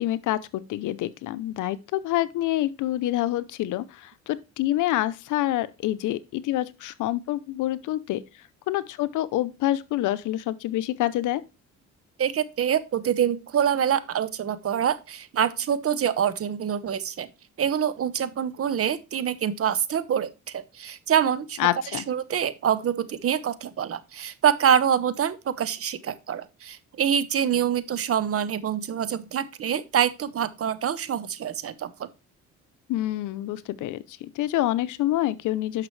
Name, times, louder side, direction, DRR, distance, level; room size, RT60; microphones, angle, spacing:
voice 1, 0.0-8.2 8.7-11.4 21.6-22.0 32.9-35.9, left 14 dB, 85° left, 0.7 m, -27 dB
voice 2, 12.2-17.3 17.6-21.6 21.9-32.1, right 9 dB, 50° right, 0.9 m, -25 dB
10.5 x 5.8 x 3.2 m
cardioid pair, 90°, 30 cm